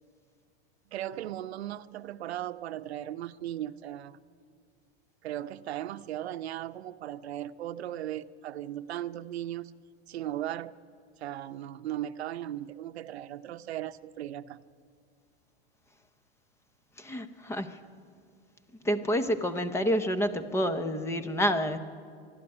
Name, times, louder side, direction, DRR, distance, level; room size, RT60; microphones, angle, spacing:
voice 1, 0.9-4.2 5.2-9.8 10.1-10.7 11.2-14.6, right 12 dB, 90° right, 12 dB, 0.8 m, -37 dB
voice 2, 17.0-17.8 18.8-21.8, equal, 10° left, 11 dB, 0.7 m, -28 dB
25.0 x 12.0 x 9.9 m, 2.2 s
supercardioid pair, 150°, 31 cm